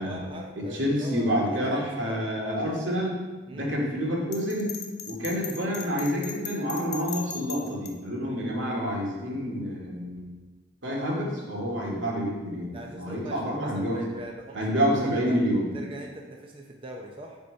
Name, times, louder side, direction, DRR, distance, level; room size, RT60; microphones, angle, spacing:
voice 1, 0.0-2.2 3.5-3.7 12.7-15.4 15.7-17.4, right 1 dB, 30° right, 0 dB, 0.7 m, -42 dB
voice 2, 0.5-3.2 3.5-4.7 5.0-10.3 10.8-14.0 14.5-15.7, equal, 85° right, -3 dB, 2.4 m, -28 dB
Bell, 4.3-7.9, left 7 dB, 60° left, 0.9 m, -38 dB
9.9 x 4.4 x 5.2 m, 1.3 s
head